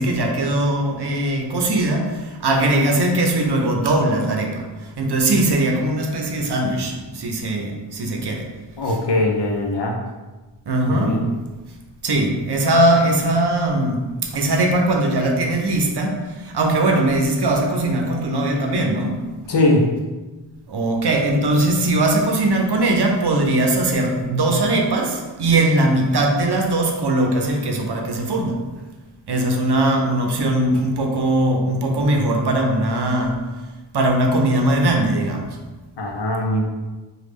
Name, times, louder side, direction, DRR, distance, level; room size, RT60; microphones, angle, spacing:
voice 1, 0.0-2.1 2.4-4.6 5.0-8.4 8.9-9.0 10.7-11.3 12.0-14.0 14.3-16.2 16.5-19.1 20.7-28.5 29.3-33.3 33.9-35.5, right 1 dB, 60° right, 2 dB, 0.6 m, -20 dB
voice 2, 8.8-10.0 10.8-11.3 19.5-19.9 36.0-36.6, left 1 dB, 65° left, 2 dB, 0.6 m, -20 dB
3.1 x 2.3 x 3.4 m, 1.2 s
wide cardioid pair, 50°, 45 cm